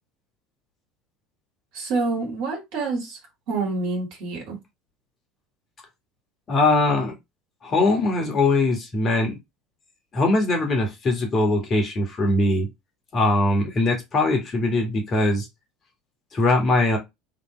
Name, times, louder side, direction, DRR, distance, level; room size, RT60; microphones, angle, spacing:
voice 1, 1.7-3.2 3.5-4.6, right 3 dB, 60° right, 2.2 m, -27 dB
voice 2, 6.5-7.2 7.6-9.4 10.1-12.7 13.1-15.5 16.3-17.0, left 2 dB, 35° left, 1.8 m, -21 dB
3.7 x 3.5 x 3.2 m
figure-of-eight pair, 65°, 0 cm